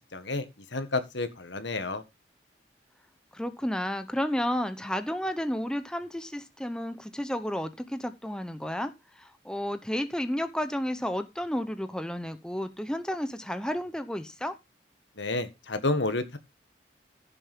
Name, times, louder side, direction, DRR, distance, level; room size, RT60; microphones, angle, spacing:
voice 1, 0.1-0.5 0.7-2.0 15.2-16.4, left 2 dB, 80° left, 1.8 m, -30 dB
voice 2, 3.3-14.6, equal, 5° left, 0.8 m, -32 dB
15.0 x 7.0 x 3.6 m
head